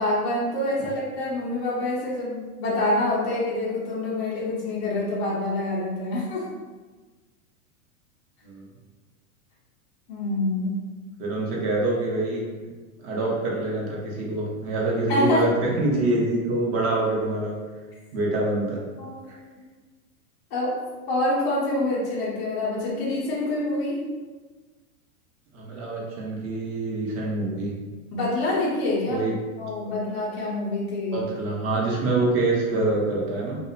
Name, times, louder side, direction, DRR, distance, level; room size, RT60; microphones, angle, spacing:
voice 1, 0.0-6.5 10.1-10.8 15.1-15.5 19.0-19.3 19.6-19.7 20.5-20.8 21.1-24.0 28.1-29.2 29.6-31.2, left 1 dB, 25° left, -8 dB, 0.3 m, -26 dB
voice 2, 11.2-12.4 13.0-17.6 18.1-18.8 19.3-19.4 25.5-27.7 29.1-29.3 31.1-33.6, right 2 dB, 30° right, -3 dB, 0.6 m, -25 dB
2.8 x 2.0 x 2.4 m, 1.3 s
hypercardioid pair, 125°, 44 cm